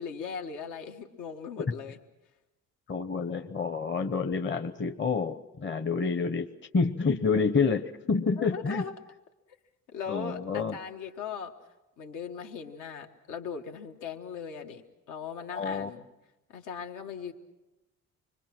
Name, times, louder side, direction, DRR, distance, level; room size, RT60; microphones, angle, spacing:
voice 1, 0.0-2.0 8.4-8.9 9.9-11.5 12.0-14.8 15.1-16.0 16.5-17.3, left 6 dB, 85° left, 4 dB, 1.6 m, -39 dB
voice 2, 2.9-6.5 6.7-8.8 10.1-10.7 15.5-15.9, left 4 dB, 40° left, 8 dB, 1.0 m, -28 dB
26.0 x 22.0 x 6.0 m, 1.0 s
cardioid pair, 90°, 30 cm